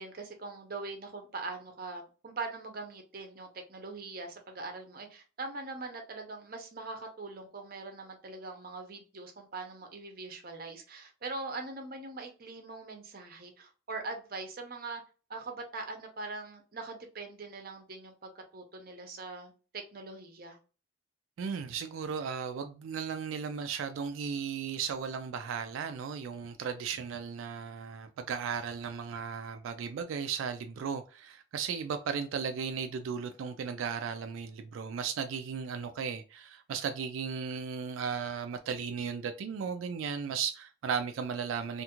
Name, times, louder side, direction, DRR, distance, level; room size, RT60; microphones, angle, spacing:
voice 1, 0.0-15.0 15.3-20.6, right 3 dB, 50° right, 0.6 m, -42 dB
voice 2, 21.4-41.8, right 6 dB, 85° right, 0.3 m, -36 dB
2.5 x 2.4 x 2.9 m
head